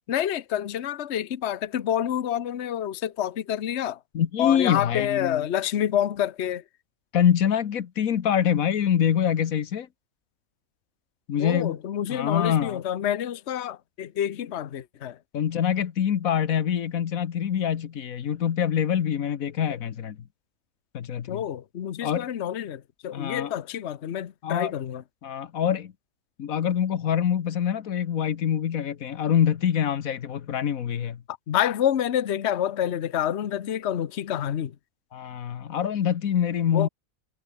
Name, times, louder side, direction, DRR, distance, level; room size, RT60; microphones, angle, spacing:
voice 1, 0.1-4.0 4.4-6.6 11.4-15.2 21.3-25.0 31.5-34.7 36.7-36.9, left 10 dB, 60° left, 1.1 m, -28 dB
voice 2, 4.1-5.5 7.1-9.9 11.3-11.8 12.1-12.8 15.3-20.2 20.9-21.4 22.0-22.3 23.1-23.5 24.4-24.8 25.2-25.9 26.4-31.2 35.1-36.9, left 9 dB, 85° left, 1.5 m, -25 dB
omnidirectional pair, 1.4 m